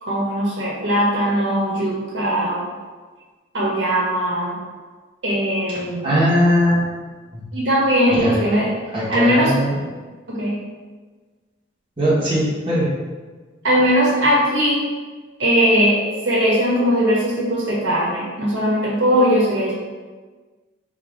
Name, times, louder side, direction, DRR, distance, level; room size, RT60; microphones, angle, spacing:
voice 1, 0.0-2.6 3.5-4.5 5.2-6.1 7.5-8.7 9.1-9.6 10.3-10.6 13.6-14.8 15.4-19.7, equal, 70° right, -5 dB, 1.3 m, -19 dB
voice 2, 6.0-6.7 7.3-7.4 8.1-8.4 8.9-9.8 12.0-12.9, equal, 25° right, -9 dB, 1.2 m, -19 dB
3.6 x 3.1 x 4.5 m, 1.4 s
head